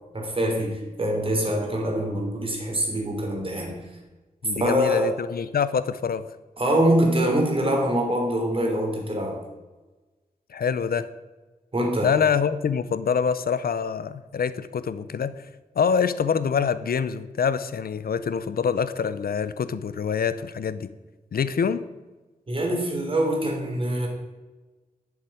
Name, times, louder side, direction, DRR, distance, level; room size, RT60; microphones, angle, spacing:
voice 1, 0.1-3.8 4.6-5.1 6.6-9.4 11.7-12.1 22.5-24.1, right 1 dB, 35° right, 1 dB, 3.6 m, -24 dB
voice 2, 4.4-6.2 10.5-11.1 12.0-15.3 15.8-20.9 21.3-21.8, left 6 dB, 90° left, 14 dB, 0.7 m, -25 dB
11.5 x 7.3 x 8.9 m, 1.2 s
wide cardioid pair, 130°, 15 cm